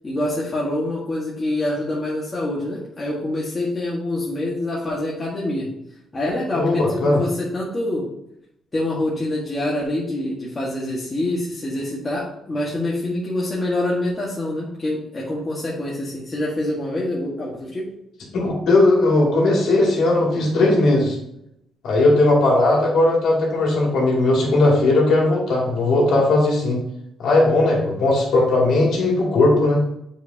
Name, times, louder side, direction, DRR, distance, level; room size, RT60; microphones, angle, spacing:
voice 1, 0.0-5.7 6.1-8.1 8.7-17.9, left 1 dB, 25° left, -6 dB, 1.7 m, -26 dB
voice 2, 6.5-7.2 18.4-21.2 21.8-26.8 27.2-29.8, left 2 dB, 75° left, -3 dB, 2.6 m, -18 dB
7.4 x 5.2 x 2.9 m, 0.79 s
cardioid pair, 90°, 0 cm